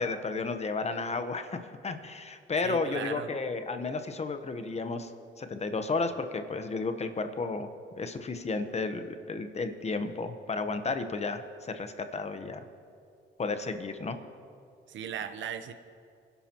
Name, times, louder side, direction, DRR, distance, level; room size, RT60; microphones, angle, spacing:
voice 1, 0.0-5.1 5.4-7.7 8.0-12.6 13.4-14.2, left 3 dB, 35° left, 8 dB, 1.0 m, -33 dB
voice 2, 2.6-3.3 14.9-15.7, right 8 dB, 70° right, 9 dB, 0.9 m, -37 dB
23.0 x 11.5 x 3.0 m, 2.4 s
cardioid pair, 90°, 20 cm